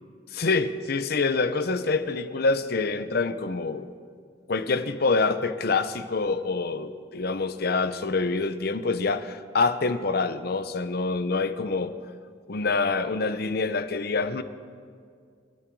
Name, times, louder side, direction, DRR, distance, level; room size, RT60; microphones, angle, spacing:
voice 1, 0.3-3.9 4.5-11.9 12.5-14.4, left 3 dB, 60° left, 12 dB, 0.7 m, -26 dB
29.0 x 10.0 x 4.7 m, 2.1 s
head